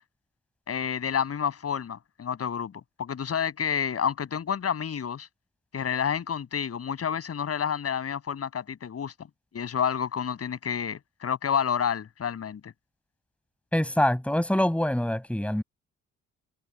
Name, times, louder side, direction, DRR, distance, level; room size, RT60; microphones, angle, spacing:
voice 1, 0.7-5.3 5.7-9.1 9.5-12.7, left 7 dB, 50° left, 7.4 m, -29 dB
voice 2, 13.7-15.6, left 1 dB, 5° left, 6.1 m, -25 dB
cardioid pair, 90°, 30 cm